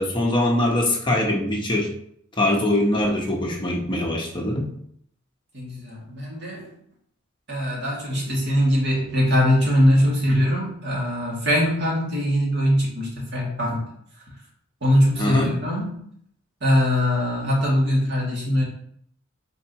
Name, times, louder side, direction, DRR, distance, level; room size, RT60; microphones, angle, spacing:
voice 1, 0.0-1.9 2.4-4.7 15.2-15.5, left 1 dB, 25° left, -1 dB, 1.1 m, -22 dB
voice 2, 5.5-6.8 7.5-13.8 14.8-15.9 16.6-18.6, equal, 55° right, -4 dB, 2.5 m, -22 dB
8.1 x 4.6 x 3.1 m, 0.67 s
head